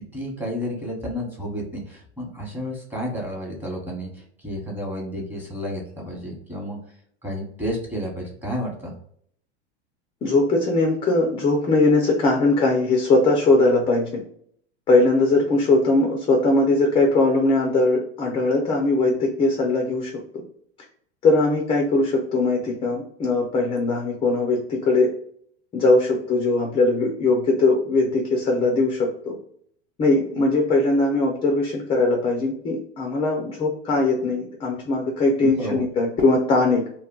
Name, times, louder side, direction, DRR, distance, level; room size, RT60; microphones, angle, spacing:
voice 1, 0.1-6.8 7.2-8.9 35.4-35.8, equal, 5° right, -2 dB, 0.9 m, -31 dB
voice 2, 10.2-14.2 14.9-20.1 21.2-25.1 25.7-29.3 30.0-36.8, left 2 dB, 15° left, 1 dB, 0.3 m, -20 dB
2.2 x 2.1 x 3.6 m, 0.64 s
supercardioid pair, 120°, 33 cm